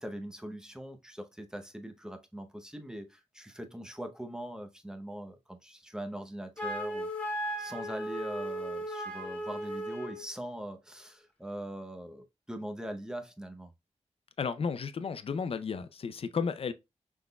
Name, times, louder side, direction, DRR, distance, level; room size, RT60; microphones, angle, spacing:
voice 1, 0.0-7.1 7.6-13.7, right 1 dB, 5° right, 0.7 m, -42 dB
Wind instrument woodwind instrument, 6.6-10.3, equal, 10° left, 1.3 m, -36 dB
voice 2, 14.4-16.7, left 5 dB, 50° left, 0.5 m, -33 dB
6.0 x 3.6 x 2.2 m
wide cardioid pair, 150°, 12 cm